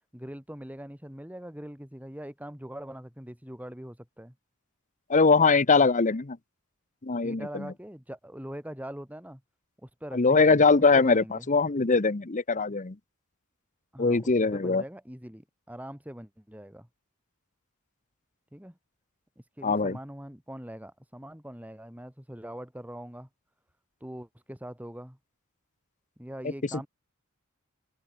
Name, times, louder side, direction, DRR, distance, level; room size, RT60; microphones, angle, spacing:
voice 1, 0.1-4.3 7.2-9.4 9.8-10.6 10.9-11.5 13.9-16.9 18.5-18.8 19.6-23.3 24.0-25.2 26.2-26.9, equal, 5° right, 3.0 m, -42 dB
voice 2, 5.1-6.4 7.0-7.7 10.1-13.0 14.0-14.8 19.6-20.0, left 4 dB, 35° left, 0.9 m, -22 dB
open air
head